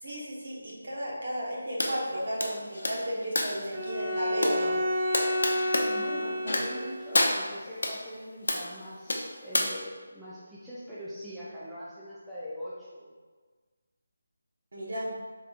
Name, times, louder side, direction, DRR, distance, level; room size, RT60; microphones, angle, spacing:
voice 1, 0.0-4.8 14.7-15.1, equal, 60° right, -5 dB, 1.2 m, -34 dB
sound 1, 1.8-1.9 2.4-3.7 4.4-4.6 5.1-5.9 6.4-6.8 7.1-7.9 8.5-8.7 9.1-9.6, left 1 dB, 90° left, 0.6 m, -28 dB
Bowed string instrument, 3.7-7.2, equal, 30° right, 1.4 m, -30 dB
voice 2, 5.5-13.1, equal, ahead, -13 dB, 0.4 m, -42 dB
4.4 x 3.6 x 2.5 m, 1.4 s
figure-of-eight pair, 175°, 0 cm